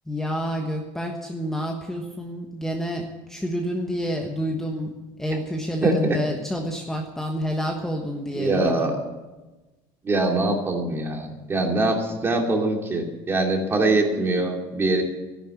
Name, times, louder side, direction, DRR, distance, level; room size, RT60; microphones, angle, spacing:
voice 1, 0.1-9.0, equal, 5° left, 1 dB, 1.3 m, -29 dB
voice 2, 5.8-6.2 8.3-8.9 10.0-15.0, right 2 dB, 20° right, 2 dB, 2.8 m, -23 dB
13.5 x 11.0 x 8.4 m, 1.1 s
cardioid pair, 145°, 11 cm